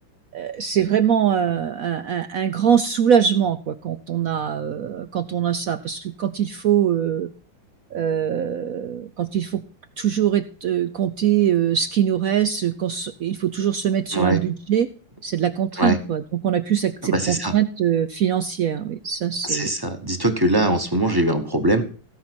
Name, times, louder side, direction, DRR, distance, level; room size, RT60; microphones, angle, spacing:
voice 1, 0.3-7.3 7.9-9.6 10.0-14.9 15.2-19.7, right 9 dB, 70° right, 11 dB, 0.8 m, -22 dB
voice 2, 17.0-17.5 19.4-21.8, right 1 dB, 15° right, 6 dB, 1.0 m, -21 dB
16.0 x 5.6 x 6.1 m, 0.41 s
omnidirectional pair, 2.2 m